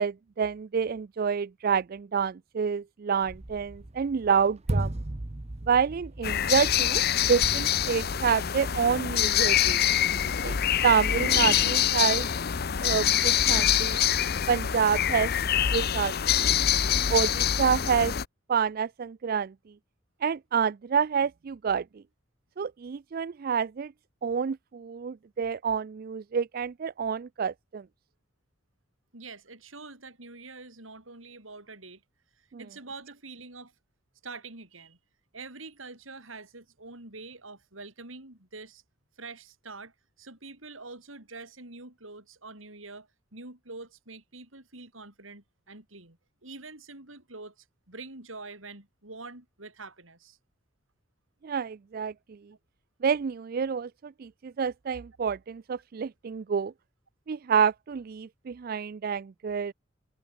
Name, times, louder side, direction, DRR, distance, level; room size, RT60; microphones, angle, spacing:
voice 1, 0.0-4.9 5.7-7.0 7.3-9.9 10.4-10.6 10.8-12.3 12.8-14.0 14.5-15.3 15.7-16.6 17.1-18.1 18.5-19.5 20.2-21.8 22.6-23.9 24.2-27.8 51.4-52.1 53.0-56.7 57.3-59.7, right 6 dB, 50° right, 0.4 m, -28 dB
sound 1, 3.2-8.6, right 1 dB, 35° right, 0.9 m, -36 dB
sound 2, 6.2-18.2, left 10 dB, 50° left, 0.7 m, -25 dB
voice 2, 29.1-32.0 32.4-33.7 34.2-35.0 35.3-38.8 39.2-50.4 52.0-52.1, right 3 dB, 90° right, 6.5 m, -45 dB
head